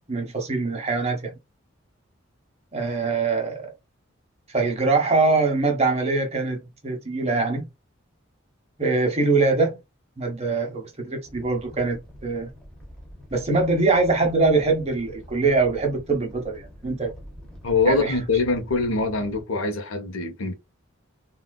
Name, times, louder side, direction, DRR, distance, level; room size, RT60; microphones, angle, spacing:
voice 1, 0.0-1.3 2.7-3.7 4.5-7.7 8.8-9.8 10.2-12.5 13.3-17.1 17.8-18.2, right 3 dB, 30° right, 0.8 m, -23 dB
Animal, 11.2-19.4, equal, 5° left, 0.8 m, -45 dB
voice 2, 17.6-20.5, left 3 dB, 80° left, 0.8 m, -23 dB
3.6 x 2.4 x 2.2 m
head